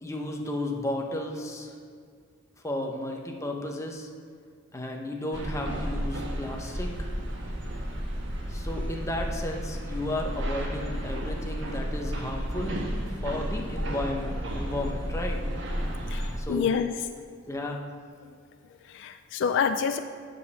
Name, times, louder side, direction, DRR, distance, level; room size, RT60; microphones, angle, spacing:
voice 1, 0.0-1.7 2.6-4.1 4.7-7.1 8.5-12.8 13.2-15.4 16.4-16.7 17.5-17.9, left 1 dB, 15° left, 1 dB, 0.8 m, -33 dB
sound 1, 5.3-16.4, equal, 65° right, 1.2 m, -32 dB
voice 2, 16.1-16.9 18.9-20.0, left 6 dB, 65° left, 10 dB, 0.3 m, -27 dB
7.6 x 5.2 x 6.8 m, 2.1 s
head